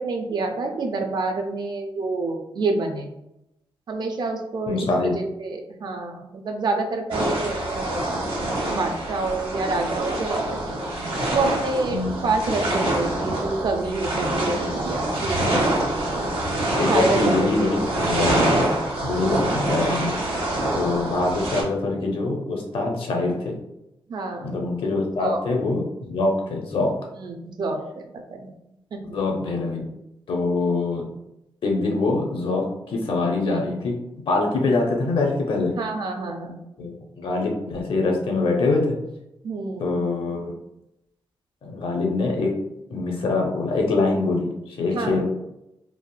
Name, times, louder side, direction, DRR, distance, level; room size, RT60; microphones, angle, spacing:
voice 1, 0.0-3.1 3.9-4.9 5.1-8.0 8.7-10.7 11.3-15.9 16.9-17.7 20.5-20.7 24.1-24.6 25.2-25.4 27.2-28.5 28.9-29.2 35.8-36.6 39.4-40.1 44.9-45.2, right 3 dB, 50° right, 4 dB, 0.4 m, -28 dB
voice 2, 4.7-5.1 11.9-12.2 14.4-14.7 15.5-15.6 16.8-18.6 19.0-20.1 20.7-23.5 24.4-26.9 29.1-29.9 30.3-31.0 31.6-33.9 34.3-35.7 36.8-39.0 39.8-40.5 41.6-42.5 42.9-44.5 44.8-45.2, left 3 dB, 70° left, 1 dB, 0.6 m, -24 dB
sound 1, 7.1-21.6, right 1 dB, 75° right, 0.9 m, -25 dB
3.4 x 2.4 x 2.2 m, 0.86 s
wide cardioid pair, 165°, 9 cm